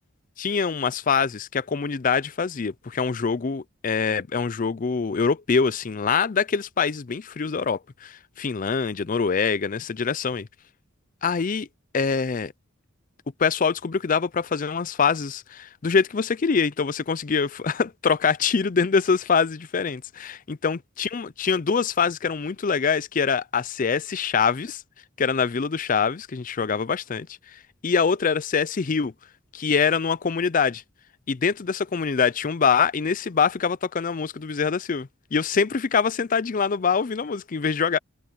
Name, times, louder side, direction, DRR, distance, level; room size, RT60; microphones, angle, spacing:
voice 1, 0.4-10.5 11.2-11.7 11.9-12.5 13.4-24.8 25.2-27.3 27.8-29.1 29.5-30.8 31.3-38.0, left 5 dB, 40° left, 0.5 m, -24 dB
head